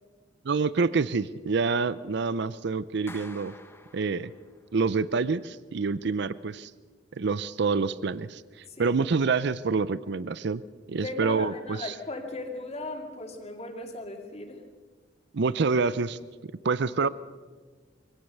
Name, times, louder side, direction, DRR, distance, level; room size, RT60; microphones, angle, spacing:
voice 1, 0.5-3.5 3.9-4.3 4.7-6.7 7.2-8.4 8.8-10.6 10.9-11.9 15.3-16.2 16.6-17.1, right 4 dB, 65° right, 17 dB, 0.5 m, -27 dB
Clapping, 3.1-4.7, left 2 dB, 15° left, 1.1 m, -49 dB
voice 2, 11.0-14.6, left 2 dB, 35° left, 4 dB, 2.4 m, -37 dB
23.5 x 17.0 x 6.7 m, 1.5 s
head